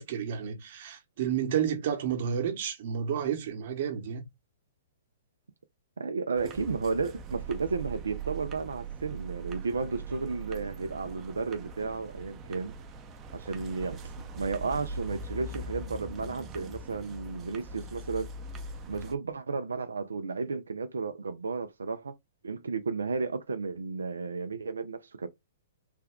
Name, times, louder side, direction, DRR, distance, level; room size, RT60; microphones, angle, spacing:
voice 1, 0.0-4.3, right 8 dB, 55° right, 1.1 m, -31 dB
voice 2, 6.0-12.7 13.3-18.3 18.9-22.1 22.4-25.3, right 4 dB, 90° right, 0.5 m, -33 dB
sound 1, 6.3-19.1, right 3 dB, 25° right, 0.6 m, -41 dB
3.4 x 2.3 x 3.5 m
hypercardioid pair, 130°, 0 cm